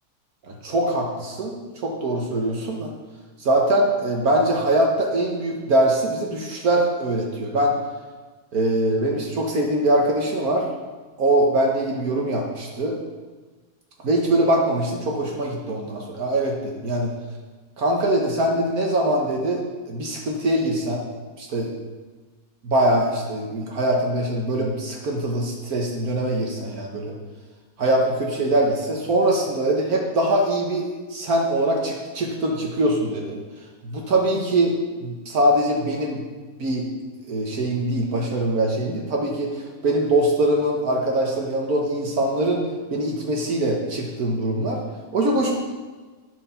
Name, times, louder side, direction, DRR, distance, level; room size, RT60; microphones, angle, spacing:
voice 1, 0.5-2.9 3.4-7.7 8.5-10.7 11.2-13.0 14.0-17.1 17.8-21.0 21.4-21.7 22.6-27.1 27.8-33.4 33.8-34.8 35.0-36.2 36.6-36.9 37.3-42.6 42.9-44.8 45.1-45.6, right 1 dB, 70° right, 0 dB, 1.6 m, -22 dB
12.0 x 4.8 x 5.7 m, 1.3 s
omnidirectional pair, 1.7 m